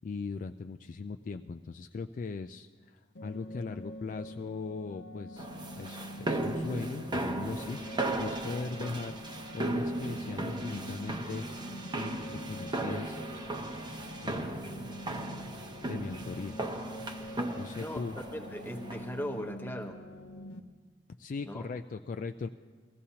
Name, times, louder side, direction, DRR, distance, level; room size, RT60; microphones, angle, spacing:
voice 1, 0.0-5.5 5.8-9.2 9.5-11.5 11.9-13.2 14.2-14.6 15.9-16.6 17.6-18.2 21.2-22.5, left 4 dB, 45° left, 7 dB, 0.3 m, -39 dB
sound 1, 3.2-20.6, equal, 80° left, 0.8 m, -45 dB
sound 2, 5.4-19.3, right 1 dB, 25° right, 0.9 m, -36 dB
voice 2, 18.3-20.0 21.4-21.7, equal, 10° left, 3 dB, 1.0 m, -38 dB
21.0 x 15.5 x 2.8 m, 1.5 s
head